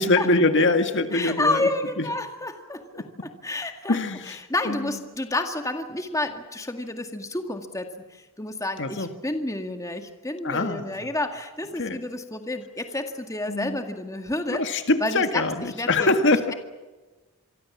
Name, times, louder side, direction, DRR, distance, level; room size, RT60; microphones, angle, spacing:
voice 1, 0.0-1.7 2.0-2.1 2.9-3.0 3.9-4.4 4.7-5.0 8.8-9.1 10.4-11.0 11.8-12.0 13.5-13.8 14.5-16.4, left 2 dB, 55° left, 7 dB, 2.0 m, -23 dB
voice 2, 1.1-4.0 4.3-14.6 15.0-16.1, left 2 dB, 15° left, 5 dB, 1.9 m, -30 dB
27.0 x 24.0 x 7.3 m, 1.2 s
head